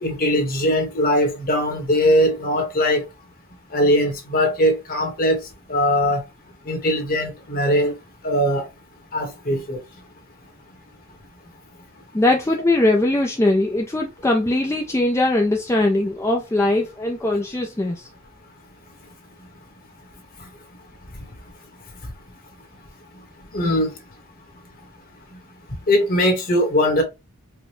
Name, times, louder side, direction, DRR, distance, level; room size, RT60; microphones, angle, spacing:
voice 1, 0.0-3.0 3.7-5.4 5.7-6.2 6.7-7.9 8.2-8.7 9.1-9.8 23.5-23.9 25.9-27.0, equal, 40° left, 1.2 m, -20 dB
voice 2, 12.1-18.1, left 2 dB, 10° left, 0.4 m, -20 dB
4.8 x 2.2 x 3.1 m
head